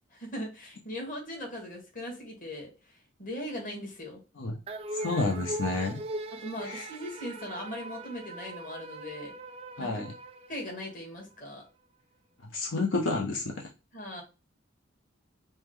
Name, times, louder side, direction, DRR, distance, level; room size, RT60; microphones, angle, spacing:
voice 1, 0.1-2.7 3.2-4.2 6.4-9.4 9.8-9.9 10.5-11.7 13.9-14.2, left 1 dB, 45° left, 0 dB, 1.6 m, -39 dB
sound 1, 4.7-11.2, right 2 dB, 30° right, 0.3 m, -40 dB
voice 2, 5.0-6.0 6.6-6.9 9.8-10.1 12.5-13.6, left 3 dB, 80° left, 1 dB, 0.7 m, -30 dB
5.5 x 2.1 x 3.1 m, 0.28 s
head